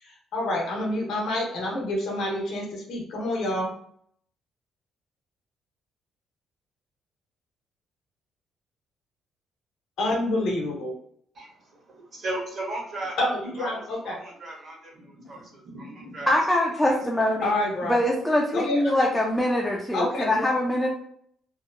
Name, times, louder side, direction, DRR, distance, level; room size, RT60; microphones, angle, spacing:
voice 1, 0.0-3.7 10.0-10.9 13.2-14.2 17.4-18.0 18.5-19.0 19.9-20.5, left 1 dB, 75° left, -1 dB, 0.9 m, -28 dB
voice 2, 11.3-13.2 13.6-17.3, right 2 dB, 45° right, -3 dB, 1.1 m, -37 dB
voice 3, 16.3-17.6 17.8-20.9, left 1 dB, 5° left, -2 dB, 0.4 m, -23 dB
2.8 x 2.1 x 2.4 m, 0.65 s
cardioid pair, 115°, 0 cm